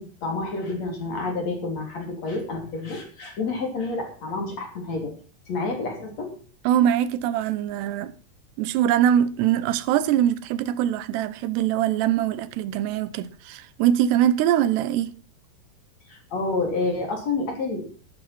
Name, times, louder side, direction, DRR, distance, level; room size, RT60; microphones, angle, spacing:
voice 1, 0.0-5.1 5.5-6.3 16.1-17.9, left 3 dB, 40° left, 4.0 m, -29 dB
voice 2, 6.7-8.1 8.6-15.2, right 10 dB, 85° right, 2.9 m, -22 dB
12.5 x 12.5 x 4.4 m
omnidirectional pair, 4.8 m